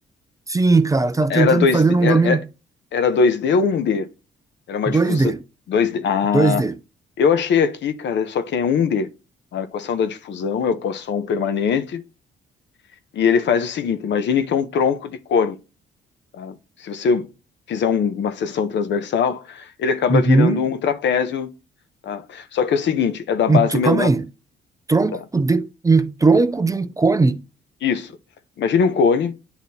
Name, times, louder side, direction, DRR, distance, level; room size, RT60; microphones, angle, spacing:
voice 1, 0.5-2.4 4.9-5.4 6.3-6.8 20.1-20.6 23.5-24.3 24.9-27.4, right 3 dB, 15° right, 0.4 m, -18 dB
voice 2, 1.3-2.4 2.9-4.1 4.7-5.3 5.7-6.7 7.2-9.1 9.5-12.0 13.1-15.6 16.3-16.5 16.8-17.3 17.7-21.5 22.0-24.1 25.1-25.2 27.8-28.1 28.6-29.4, left 6 dB, 65° left, 0.8 m, -21 dB
10.5 x 3.9 x 2.8 m
cardioid pair, 90°, 20 cm